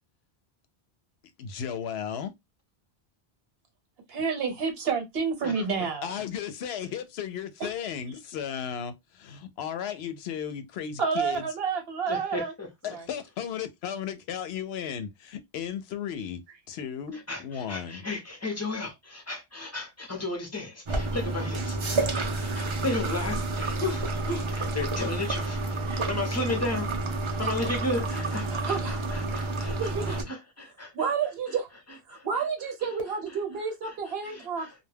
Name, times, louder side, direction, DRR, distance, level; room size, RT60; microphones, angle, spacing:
voice 1, 1.4-2.3 6.0-8.9 9.2-11.5 12.8-16.4 16.7-18.1, left 8 dB, 75° left, 0.8 m, -35 dB
voice 2, 4.1-6.1 7.6-7.7 11.0-12.5 12.9-13.0 27.3-27.4 28.5-29.0 29.8-30.2 30.9-31.7 32.1-34.7, right 5 dB, 65° right, 1.0 m, -30 dB
voice 3, 5.4-5.9 12.1-12.7 17.1-25.6 25.9-26.9 27.2-31.1 32.1-32.2 34.2-34.7, left 2 dB, 20° left, 0.6 m, -34 dB
sound 1, 20.9-30.2, right 2 dB, 40° right, 0.4 m, -30 dB
2.2 x 2.2 x 3.2 m
omnidirectional pair, 1.1 m